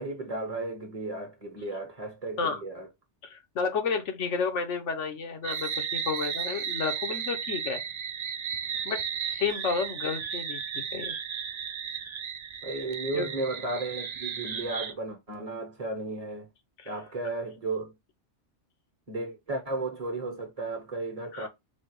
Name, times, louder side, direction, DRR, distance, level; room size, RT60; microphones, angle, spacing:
voice 1, 0.0-2.9 12.6-16.5 16.8-17.9 19.1-21.5, right 2 dB, 30° right, 1.1 m, -34 dB
voice 2, 3.2-7.8 8.8-9.0 9.3-11.1 13.1-13.3 16.8-16.9 21.3-21.5, left 5 dB, 75° left, 1.2 m, -31 dB
sound 1, 5.4-14.9, right 7 dB, 65° right, 0.4 m, -34 dB
4.3 x 2.3 x 4.6 m
omnidirectional pair, 1.2 m